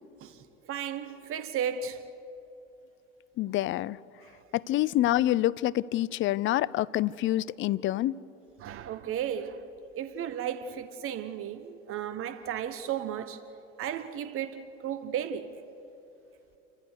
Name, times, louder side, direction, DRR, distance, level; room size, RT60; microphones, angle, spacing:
voice 1, 0.2-2.0 4.2-4.4 8.6-9.7 9.9-13.4 13.8-15.5, right 9 dB, 35° right, 1.0 m, -34 dB
voice 2, 3.4-4.0 4.5-8.2, left 14 dB, 35° left, 0.5 m, -27 dB
29.0 x 15.0 x 6.6 m
hypercardioid pair, 75°, 37 cm